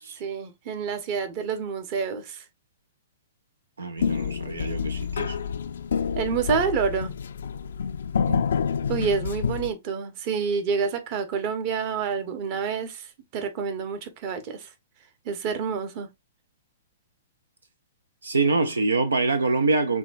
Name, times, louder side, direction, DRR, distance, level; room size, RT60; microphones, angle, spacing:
voice 1, 0.2-2.4 6.1-7.1 8.9-13.1 13.3-14.7 15.2-16.1, right 6 dB, 45° right, 1.0 m, -28 dB
voice 2, 3.8-5.4 8.3-8.4 18.2-20.0, right 3 dB, 90° right, 0.5 m, -25 dB
sound 1, 4.0-9.7, left 6 dB, 75° left, 0.4 m, -28 dB
6.0 x 2.3 x 2.5 m
hypercardioid pair, 120°, 0 cm